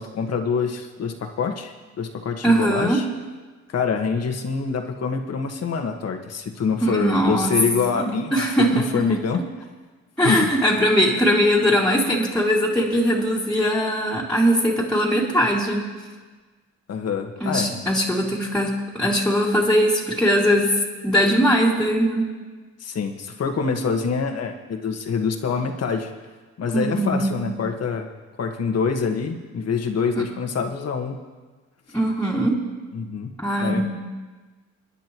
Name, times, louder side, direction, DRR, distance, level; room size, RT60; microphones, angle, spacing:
voice 1, 0.0-3.0 3.7-9.4 10.2-10.5 16.9-17.7 22.8-26.1 26.6-28.1 28.4-31.2 32.9-33.3 33.6-33.8, left 5 dB, 55° left, 4 dB, 1.6 m, -25 dB
voice 2, 2.4-3.0 6.8-7.5 7.9-9.2 10.2-15.8 17.4-20.7 21.0-22.3 26.7-27.4 30.2-30.3 31.9-32.6 33.4-33.8, equal, 5° left, -6 dB, 2.5 m, -20 dB
30.0 x 10.5 x 3.1 m, 1.3 s
cardioid pair, 90°, 30 cm